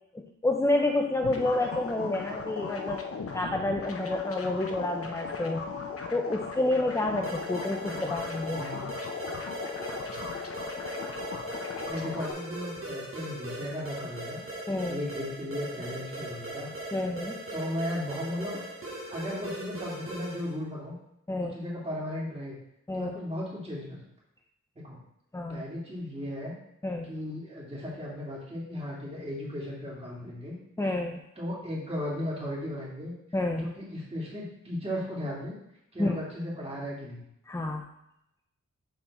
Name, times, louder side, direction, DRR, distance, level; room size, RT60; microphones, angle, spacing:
voice 1, 0.1-3.0 3.3-5.6 6.1-8.6 14.7-15.0 16.9-17.4 21.3-21.5 22.9-23.1 25.3-25.6 26.8-27.1 30.8-31.2 33.3-33.7 36.0-36.1 37.5-37.8, left 2 dB, 10° left, 2 dB, 0.5 m, -29 dB
sound 1, 1.2-12.3, left 5 dB, 50° left, 0.7 m, -37 dB
sound 2, 7.2-20.6, right 1 dB, 45° right, 1.5 m, -40 dB
voice 2, 8.5-8.9 11.8-14.4 14.9-16.7 17.5-18.6 19.1-20.9 21.4-22.6 22.9-24.0 24.8-25.0 25.5-26.5 27.0-30.6 31.4-33.1 33.5-35.6 35.9-37.2, left 1 dB, 20° right, -6 dB, 2.2 m, -36 dB
7.1 x 3.7 x 4.2 m, 0.80 s
wide cardioid pair, 130°, 30 cm